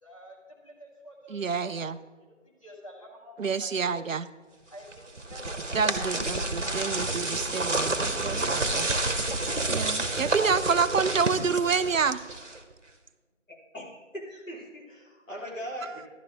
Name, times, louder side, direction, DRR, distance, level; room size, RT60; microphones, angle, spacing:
voice 1, 0.0-0.4 0.6-3.9 4.7-6.4, equal, 25° left, -6 dB, 1.9 m, -48 dB
voice 2, 1.3-2.0 3.4-4.3 5.7-8.9 9.2-12.2, right 5 dB, 80° right, 14 dB, 0.6 m, -28 dB
sound 1, 4.9-12.7, right 2 dB, 65° right, 1.3 m, -29 dB
voice 3, 13.5-16.1, equal, 80° left, -4 dB, 3.7 m, -40 dB
11.5 x 11.5 x 3.4 m, 1.3 s
figure-of-eight pair, 175°, 39 cm